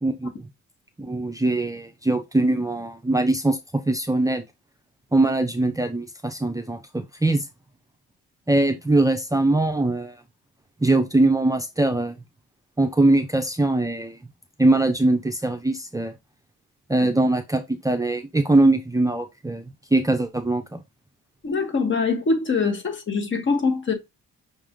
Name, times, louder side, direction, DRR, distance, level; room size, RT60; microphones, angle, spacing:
voice 1, 0.0-0.5 1.0-4.4 5.1-7.5 8.5-10.2 10.8-12.2 12.8-14.2 14.6-16.1 16.9-19.6 19.9-20.8, right 2 dB, 10° right, 0.5 m, -22 dB
voice 2, 21.4-23.9, left 4 dB, 40° left, 1.3 m, -23 dB
5.9 x 2.4 x 3.6 m
cardioid pair, 90°, 30 cm